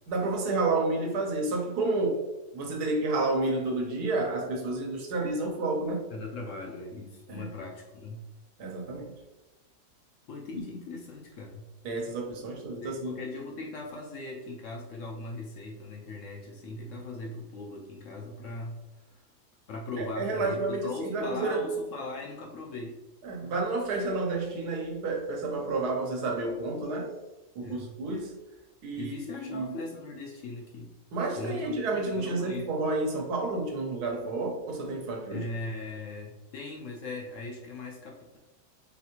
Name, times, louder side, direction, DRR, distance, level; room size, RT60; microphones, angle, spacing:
voice 1, 0.1-2.2 2.5-6.1 7.3-7.5 8.6-9.1 11.8-13.2 20.0-21.6 23.2-27.1 27.5-28.3 28.8-29.8 31.1-35.5, right 2 dB, 80° right, 1 dB, 1.3 m, -30 dB
voice 2, 6.1-8.2 10.3-11.7 12.8-18.8 19.1-19.2 19.7-23.0 27.6-28.0 29.0-30.9 31.3-32.7 35.3-38.4, left 2 dB, 65° left, 0 dB, 0.8 m, -39 dB
3.9 x 3.3 x 3.0 m, 1.1 s
omnidirectional pair, 1.7 m